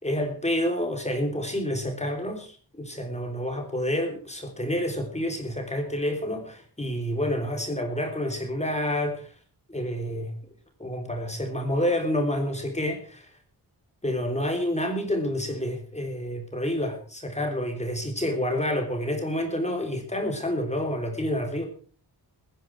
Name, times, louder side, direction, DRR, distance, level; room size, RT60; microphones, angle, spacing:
voice 1, 0.0-9.3 9.7-10.3 10.8-13.3 14.0-21.7, left 1 dB, 15° left, 3 dB, 3.4 m, -28 dB
22.5 x 10.5 x 4.6 m, 0.41 s
wide cardioid pair, 155°, 40 cm